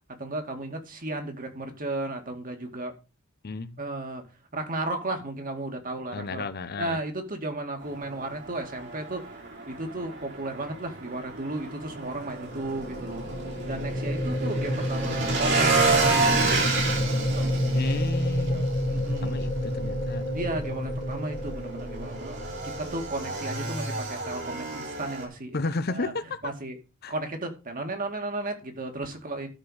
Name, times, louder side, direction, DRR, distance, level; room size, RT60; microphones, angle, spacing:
voice 1, 0.2-2.9 3.8-4.2 4.5-6.4 6.8-9.4 9.7-13.3 13.6-18.0 18.5-19.4 20.3-25.6 25.9-26.1 26.4-26.8 27.1-29.5, right 2 dB, 45° right, 2.2 m, -34 dB
voice 2, 3.4-3.8 6.1-7.0 17.7-18.7 19.0-20.2 25.5-26.4 27.0-27.1, left 3 dB, 50° left, 0.8 m, -33 dB
Motorcycle / Engine, 7.8-25.2, right 3 dB, 60° right, 3.3 m, -30 dB
sound 1, 11.9-24.1, left 1 dB, 25° left, 1.8 m, -30 dB
12.5 x 4.5 x 6.4 m
head